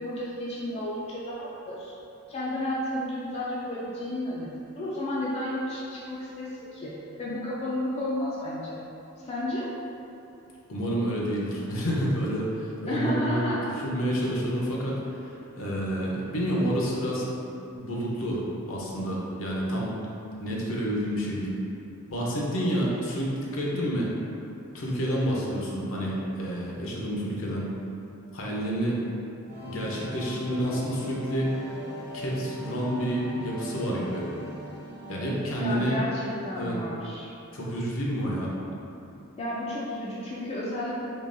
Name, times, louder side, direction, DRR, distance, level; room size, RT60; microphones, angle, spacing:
voice 1, 0.0-1.9 2.3-6.9 7.2-8.8 9.2-9.7 12.9-13.6 35.6-37.3 39.4-41.1, left 1 dB, 30° left, -6 dB, 0.4 m, -32 dB
voice 2, 10.7-17.3 17.7-20.0 20.4-21.6 22.1-24.1 24.7-27.8 28.3-29.0 29.6-31.5 32.1-34.3 35.1-36.0 36.5-36.8 37.5-38.6, equal, 65° left, -4 dB, 0.7 m, -29 dB
sound 1, 29.4-36.3, equal, 45° right, 1.0 m, -40 dB
3.7 x 3.2 x 2.6 m, 2.9 s
head